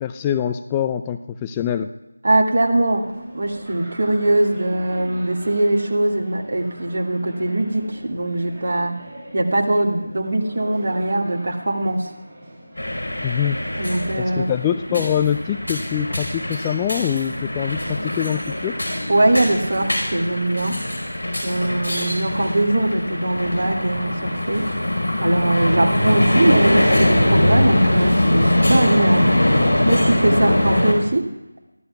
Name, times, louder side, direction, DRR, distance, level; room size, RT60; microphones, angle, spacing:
voice 1, 0.0-1.9 13.2-13.6 14.2-18.8, left 9 dB, 15° left, 8 dB, 0.3 m, -24 dB
voice 2, 2.2-9.0 9.3-12.1 13.8-14.5 14.9-15.0 19.1-20.8 21.4-24.7 25.2-29.3 29.9-31.3, right 1 dB, 55° right, 1 dB, 2.1 m, -21 dB
sound 1, 2.8-20.0, right 1 dB, 15° right, 6.3 m, -42 dB
sound 2, 12.8-30.9, left 1 dB, 85° left, 4.8 m, -21 dB
24.0 x 14.5 x 2.4 m, 0.99 s
figure-of-eight pair, 165°, 0 cm